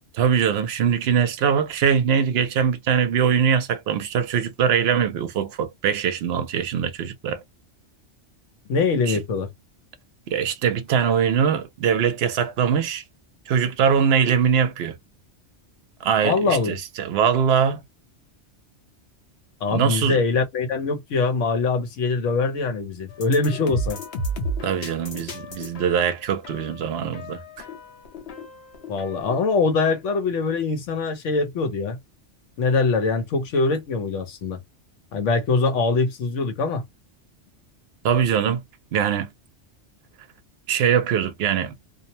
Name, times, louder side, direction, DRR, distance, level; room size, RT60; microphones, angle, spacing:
voice 1, 0.2-7.4 9.1-9.2 10.3-13.0 13.5-15.0 16.0-17.8 19.7-20.2 24.6-27.4 38.0-38.6 38.9-39.3 40.7-41.7, right 7 dB, 65° right, 0.8 m, -22 dB
voice 2, 8.7-9.5 16.2-16.8 19.6-24.0 28.9-32.0 32.6-34.6 35.1-36.8, left 4 dB, 85° left, 1.1 m, -23 dB
sound 1, 23.1-29.5, equal, 60° left, 0.9 m, -34 dB
2.5 x 2.1 x 2.7 m
omnidirectional pair, 1.2 m